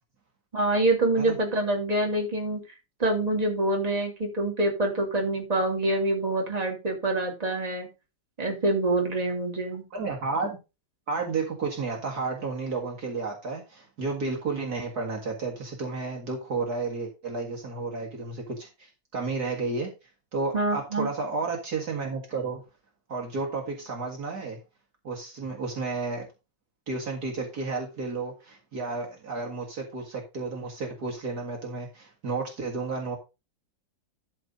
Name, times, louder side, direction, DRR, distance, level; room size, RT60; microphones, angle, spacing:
voice 1, 0.5-2.6 3.0-7.9 8.4-9.8 20.5-21.1, right 2 dB, 20° right, 1 dB, 2.8 m, -26 dB
voice 2, 9.9-10.6 11.1-19.9 20.3-22.6 23.1-24.6 25.0-26.3 26.9-33.2, right 4 dB, 55° right, 0 dB, 2.4 m, -32 dB
12.5 x 4.3 x 5.2 m, 0.27 s
omnidirectional pair, 2.0 m